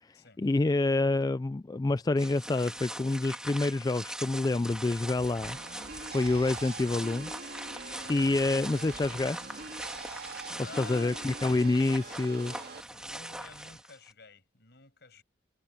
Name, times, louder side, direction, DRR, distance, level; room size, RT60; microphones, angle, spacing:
voice 1, 0.0-5.6 6.0-7.3 8.1-9.6 10.8-12.5, left 2 dB, 20° left, 0.3 m, -28 dB
sound 1, 2.2-14.1, right 1 dB, 5° right, 1.6 m, -42 dB
sound 2, 5.4-12.8, right 4 dB, 55° right, 2.9 m, -44 dB
sound 3, 7.9-13.8, right 2 dB, 25° right, 7.1 m, -62 dB
voice 2, 8.2-9.1 10.6-11.2 12.9-15.2, left 3 dB, 60° left, 7.8 m, -50 dB
head